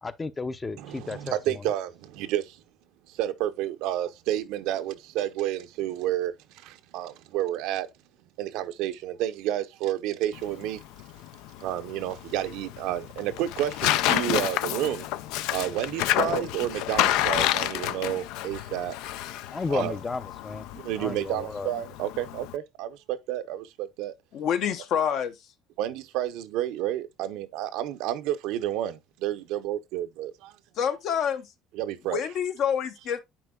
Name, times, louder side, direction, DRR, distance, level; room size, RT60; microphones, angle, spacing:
voice 1, 0.0-1.7 19.5-20.7 21.0-21.7, left 4 dB, 20° left, 0.6 m, -33 dB
voice 2, 0.8-2.6 3.1-7.9 8.4-10.8 11.6-15.1 15.5-19.0 19.7-19.9 20.7-24.1 25.8-30.5 31.7-32.2, right 12 dB, 80° right, 0.6 m, -30 dB
Tearing, 10.3-22.6, left 14 dB, 80° left, 0.4 m, -29 dB
voice 3, 24.3-25.3 30.8-31.5 32.1-33.2, left 8 dB, 60° left, 0.9 m, -27 dB
9.9 x 4.4 x 2.2 m
cardioid pair, 115°, 0 cm